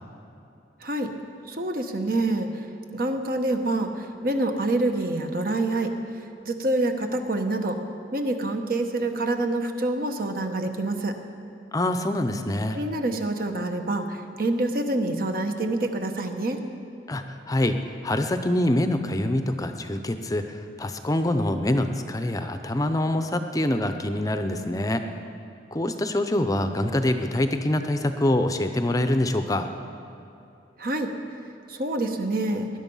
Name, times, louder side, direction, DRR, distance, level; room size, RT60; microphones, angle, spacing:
voice 1, 0.8-1.1 1.5-2.6 2.9-5.9 6.4-7.8 8.1-11.1 12.7-16.6 30.8-31.1 31.7-32.7, right 2 dB, 55° right, 5 dB, 1.2 m, -26 dB
voice 2, 11.7-12.8 17.1-17.8 18.0-25.0 25.7-29.7, left 1 dB, 20° left, 8 dB, 0.6 m, -25 dB
19.5 x 11.0 x 5.5 m, 2.7 s
head